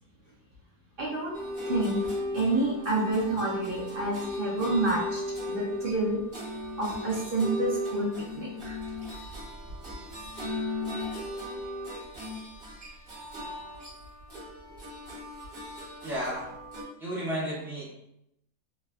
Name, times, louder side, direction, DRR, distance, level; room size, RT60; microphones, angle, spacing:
voice 1, 1.0-1.4 1.7-2.0 2.3-5.2 5.5-6.2 6.8-8.8, right 2 dB, 75° right, -4 dB, 0.5 m, -28 dB
sound 1, 1.3-16.8, left 1 dB, 40° right, 1.1 m, -36 dB
voice 2, 16.0-16.5 17.0-17.8, equal, ahead, -9 dB, 0.7 m, -33 dB
3.2 x 2.0 x 2.3 m, 0.81 s
omnidirectional pair, 1.5 m